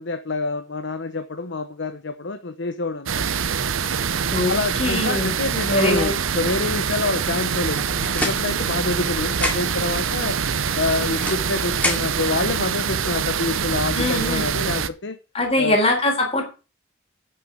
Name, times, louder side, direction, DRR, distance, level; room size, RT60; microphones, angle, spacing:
voice 1, 0.0-3.3 4.5-10.4 10.8-15.2 15.6-15.8, left 3 dB, 60° left, 8 dB, 0.9 m, -27 dB
sound 1, 3.1-14.9, right 6 dB, 80° right, 0.8 m, -24 dB
voice 2, 4.8-5.3 5.7-6.2 13.9-14.5 15.3-16.4, left 1 dB, 30° left, 2 dB, 3.8 m, -22 dB
sound 2, 7.7-9.0 9.3-9.9 10.7-12.3, left 1 dB, 5° left, 2.5 m, -29 dB
8.6 x 6.8 x 8.0 m, 0.33 s
head